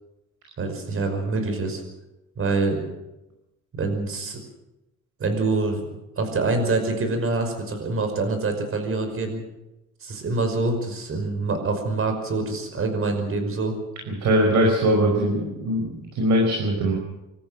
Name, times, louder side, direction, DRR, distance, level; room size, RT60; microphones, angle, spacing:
voice 1, 0.6-1.8 2.4-2.8 3.8-4.4 5.2-5.8 6.2-9.4 10.0-13.8, right 3 dB, 45° right, 6 dB, 5.5 m, -25 dB
voice 2, 14.2-16.9, equal, 65° right, 0 dB, 5.3 m, -21 dB
25.5 x 14.0 x 7.6 m, 0.96 s
cardioid pair, 125°, 32 cm